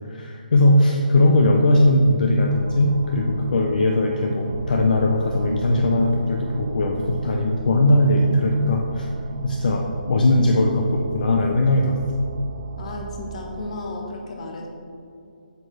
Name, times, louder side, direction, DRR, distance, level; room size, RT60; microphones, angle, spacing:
voice 1, 0.1-9.1 9.4-12.0, left 1 dB, 60° left, 1 dB, 0.7 m, -19 dB
sound 1, 2.5-13.8, right 5 dB, 45° right, 0.4 m, -36 dB
voice 2, 12.8-14.7, left 2 dB, 40° left, 1 dB, 1.3 m, -33 dB
8.2 x 6.8 x 3.3 m, 2.6 s
hypercardioid pair, 160°, 5 cm